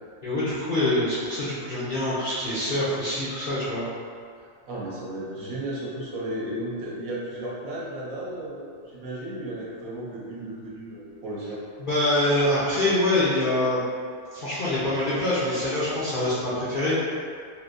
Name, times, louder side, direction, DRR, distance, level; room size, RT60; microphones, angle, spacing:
voice 1, 0.2-3.9 11.8-13.8 14.3-16.9, left 1 dB, 55° left, -11 dB, 0.5 m, -25 dB
voice 2, 4.4-11.6, right 1 dB, 70° right, -5 dB, 1.1 m, -34 dB
3.2 x 2.6 x 2.5 m, 2.2 s
omnidirectional pair, 1.5 m